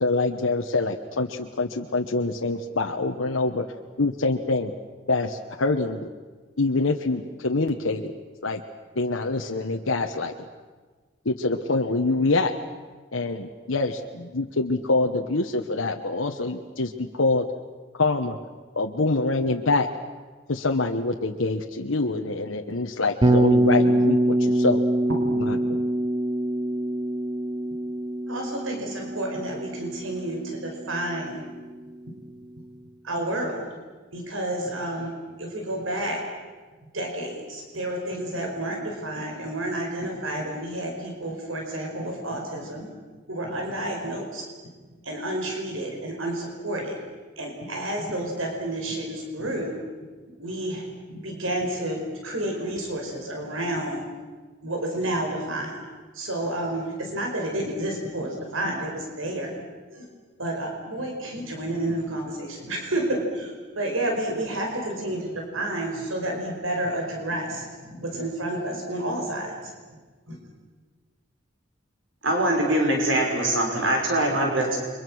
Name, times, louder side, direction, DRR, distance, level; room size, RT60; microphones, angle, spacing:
voice 1, 0.0-3.7 4.0-4.7 5.1-6.1 6.6-8.1 8.4-8.6 9.0-10.3 11.2-12.5 13.1-17.4 18.0-18.4 18.7-19.9 20.5-24.8 25.4-25.8, left 3 dB, 90° left, 3 dB, 1.3 m, -25 dB
Bass guitar, 23.2-31.3, right 1 dB, 20° right, 0.7 m, -24 dB
voice 2, 28.3-31.5 33.0-33.7 34.1-36.2 36.9-42.9 43.3-44.5 45.0-47.0 47.4-49.8 50.4-54.1 54.6-55.8 56.1-59.6 59.9-60.1 60.4-69.7 70.3-70.4, right 1 dB, 90° right, 1 dB, 5.1 m, -30 dB
voice 3, 72.2-74.8, right 1 dB, 70° right, 1 dB, 5.9 m, -23 dB
29.5 x 24.0 x 6.4 m, 1.4 s
head